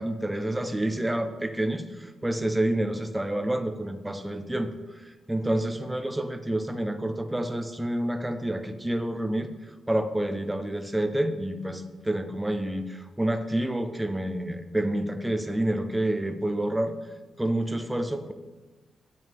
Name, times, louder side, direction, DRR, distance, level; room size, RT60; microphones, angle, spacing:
voice 1, 0.0-9.5 9.9-16.9 17.4-18.3, right 1 dB, 5° right, 7 dB, 0.5 m, -28 dB
9.4 x 8.5 x 3.5 m, 1.2 s
wide cardioid pair, 175°, 0 cm